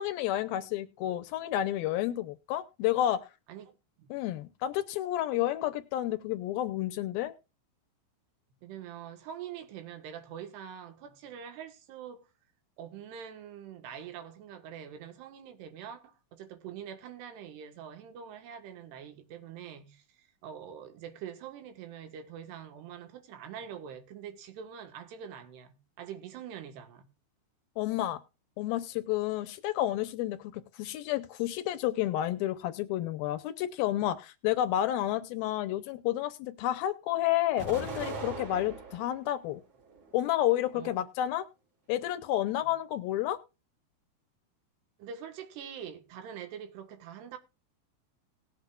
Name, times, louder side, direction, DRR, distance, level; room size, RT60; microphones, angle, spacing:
voice 1, 0.0-3.3 4.1-7.3 27.8-28.2 28.6-39.6 40.1-41.5 41.9-43.4, left 13 dB, 80° left, 2.4 m, -30 dB
voice 2, 3.5-4.2 8.6-12.3 12.8-27.1 40.7-40.9 42.6-42.7 45.0-47.4, right 8 dB, 85° right, 3.5 m, -44 dB
Explosion, 37.6-39.2 39.7-40.6, right 3 dB, 40° right, 3.4 m, -40 dB
19.0 x 8.2 x 2.4 m
omnidirectional pair, 4.6 m